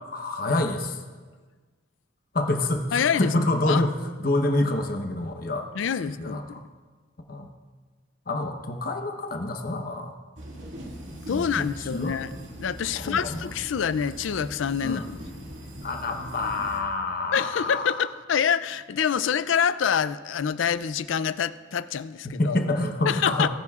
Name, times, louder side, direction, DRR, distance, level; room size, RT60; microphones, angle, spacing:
voice 1, 0.1-1.0 2.3-5.7 6.2-6.6 7.3-7.5 8.3-10.1 11.3-12.2 12.9-13.4 14.8-15.0 15.8-18.0 22.2-23.5, left 2 dB, 45° left, 4 dB, 0.9 m, -27 dB
voice 2, 2.9-3.4 3.7-3.8 5.8-6.6 11.3-12.3 12.6-15.2 17.3-22.6 23.1-23.5, left 7 dB, 75° left, 15 dB, 0.4 m, -26 dB
sound 1, 10.4-16.8, equal, 70° right, 2.1 m, -41 dB
18.5 x 10.5 x 2.4 m, 1.4 s
head